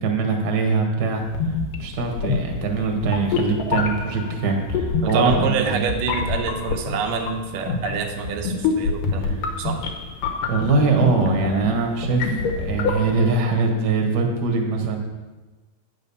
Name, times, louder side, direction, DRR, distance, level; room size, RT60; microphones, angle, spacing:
voice 1, 0.0-1.3 1.8-5.9 9.2-9.3 10.5-15.0, right 4 dB, 45° right, 3 dB, 1.4 m, -22 dB
sound 1, 1.3-13.4, left 5 dB, 80° left, 2.7 m, -27 dB
voice 2, 5.0-9.8, right 5 dB, 85° right, 4 dB, 2.6 m, -26 dB
9.3 x 6.2 x 7.0 m, 1.2 s
omnidirectional pair, 3.8 m